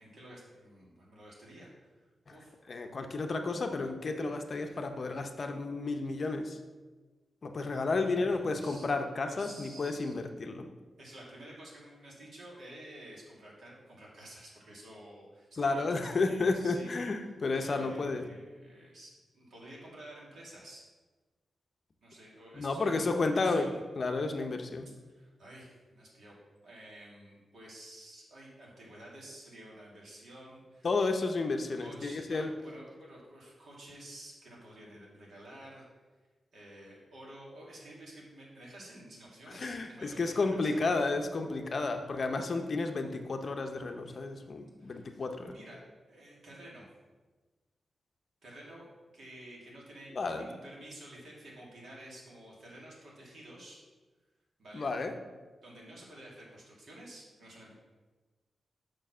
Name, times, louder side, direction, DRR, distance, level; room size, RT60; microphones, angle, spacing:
voice 1, 0.0-1.9 2.3-2.5 4.7-4.8 8.0-8.9 9.3-10.1 11.0-16.9 17.5-20.8 22.0-23.8 25.1-26.4 26.6-30.9 31.7-35.8 36.5-40.8 41.8-42.0 44.1-44.2 44.8-45.8 46.1-46.9 48.4-53.8 54.6-54.9 55.6-57.7, right 1 dB, 75° right, -4 dB, 2.3 m, -51 dB
voice 2, 2.7-6.6 7.4-10.7 15.6-18.2 22.5-24.9 30.8-32.5 39.5-45.5 50.1-50.5 54.7-55.1, left 3 dB, 45° left, 5 dB, 0.6 m, -32 dB
6.1 x 4.6 x 6.1 m, 1.3 s
wide cardioid pair, 130°, 0 cm